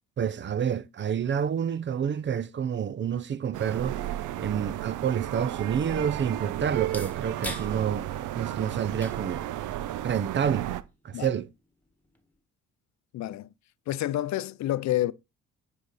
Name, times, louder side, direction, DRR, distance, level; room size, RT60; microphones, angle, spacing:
voice 1, 0.2-4.0 4.4-9.5 10.0-10.7 11.0-11.5, right 8 dB, 40° right, 0.5 m, -29 dB
sound 1, 3.5-10.8, right 13 dB, 80° right, 0.7 m, -33 dB
sound 2, 6.7-12.4, left 1 dB, 5° left, 1.6 m, -47 dB
voice 2, 13.1-13.5 13.9-15.1, left 14 dB, 65° left, 0.5 m, -28 dB
9.5 x 5.0 x 4.1 m
cardioid pair, 90°, 30 cm